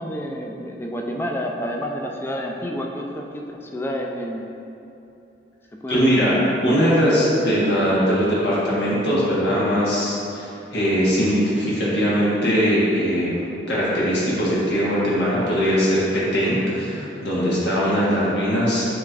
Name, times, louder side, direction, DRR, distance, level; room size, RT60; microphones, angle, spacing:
voice 1, 0.0-4.5 5.7-6.9, equal, 15° left, 1 dB, 0.3 m, -29 dB
voice 2, 5.9-6.3 6.6-18.9, equal, 75° left, -8 dB, 1.3 m, -21 dB
7.2 x 3.0 x 2.4 m, 2.8 s
head